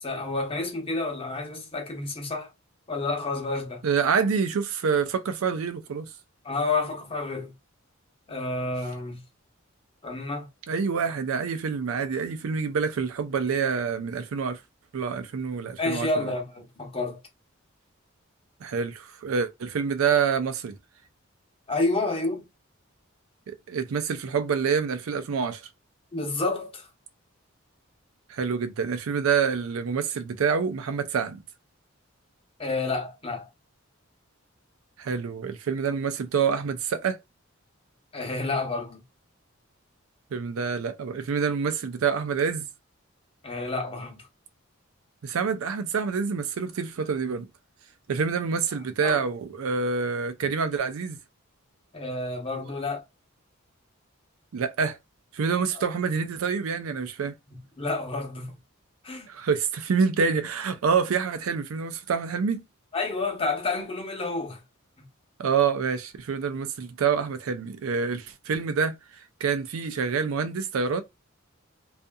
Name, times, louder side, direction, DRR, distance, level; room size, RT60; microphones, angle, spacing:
voice 1, 0.0-2.5 2.9-3.8 6.4-7.5 8.3-9.2 10.0-10.5 15.8-17.2 21.7-22.5 26.1-26.9 32.6-33.5 38.1-39.0 43.4-44.2 49.0-49.2 51.9-53.0 55.7-55.8 57.5-58.6 59.0-59.3 62.9-64.6, left 3 dB, 25° left, 0.8 m, -29 dB
voice 2, 3.8-6.1 10.7-14.6 14.9-16.3 18.6-20.8 23.5-25.6 28.3-31.4 35.0-37.2 40.3-42.7 45.2-47.5 48.1-51.2 54.5-55.0 55.3-57.4 59.3-62.6 65.4-69.0 69.4-71.0, right 6 dB, 85° right, 0.4 m, -27 dB
2.6 x 2.4 x 2.2 m
head